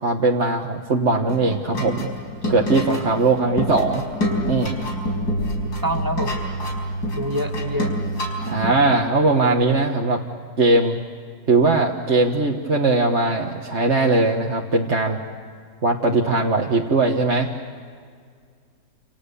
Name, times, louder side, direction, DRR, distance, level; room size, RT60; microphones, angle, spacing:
voice 1, 0.0-2.1 2.5-4.0 4.4-4.8 8.5-10.2 10.6-11.0 11.5-15.2 15.8-17.5, right 3 dB, 45° right, -1 dB, 1.7 m, -20 dB
sound 1, 1.3-8.7, equal, 80° left, 5.5 m, -27 dB
voice 2, 5.8-6.5 7.1-8.0, equal, 10° right, 4 dB, 1.9 m, -26 dB
29.5 x 28.5 x 7.0 m, 2.1 s
omnidirectional pair, 1.7 m